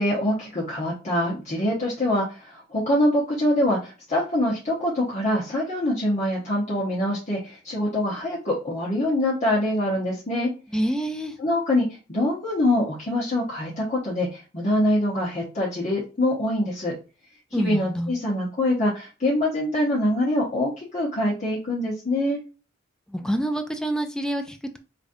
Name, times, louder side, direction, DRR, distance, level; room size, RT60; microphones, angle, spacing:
voice 1, 0.0-10.5 11.4-16.9 17.5-22.4, left 1 dB, 35° left, 0.9 m, -24 dB
voice 2, 10.7-11.3 17.5-18.1 23.1-24.8, right 1 dB, 5° left, 0.4 m, -27 dB
5.0 x 2.5 x 2.6 m
head